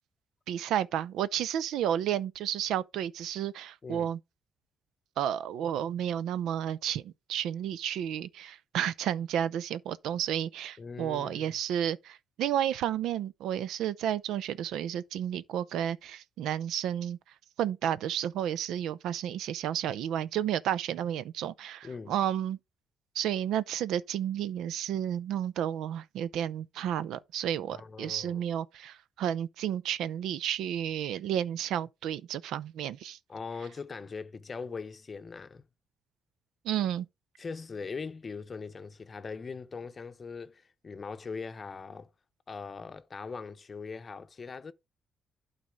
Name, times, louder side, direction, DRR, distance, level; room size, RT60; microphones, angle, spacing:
voice 1, 0.5-4.2 5.2-17.2 17.6-22.6 23.1-33.2 36.6-37.1, right 10 dB, 85° right, 0.5 m, -32 dB
voice 2, 10.8-11.5 21.8-22.2 27.7-28.4 33.3-35.6 37.4-42.1 42.5-44.7, left 5 dB, 35° left, 0.7 m, -41 dB
11.5 x 4.2 x 3.6 m
cardioid pair, 90°, 0 cm